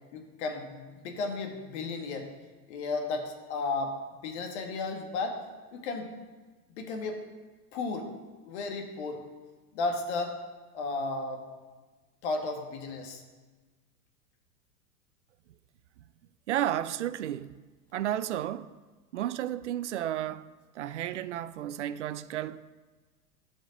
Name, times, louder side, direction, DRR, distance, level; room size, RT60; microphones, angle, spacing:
voice 1, 0.1-2.3 2.7-3.9 4.2-5.4 5.7-6.1 6.8-7.2 7.7-8.1 8.5-9.2 9.7-10.3 10.7-11.4 12.2-13.2, left 3 dB, 45° left, 1.8 m, -33 dB
voice 2, 16.5-17.5 17.9-18.7 19.1-20.5 20.7-22.6, right 12 dB, 50° right, 0.5 m, -32 dB
12.5 x 5.3 x 6.6 m
figure-of-eight pair, 95°, 47 cm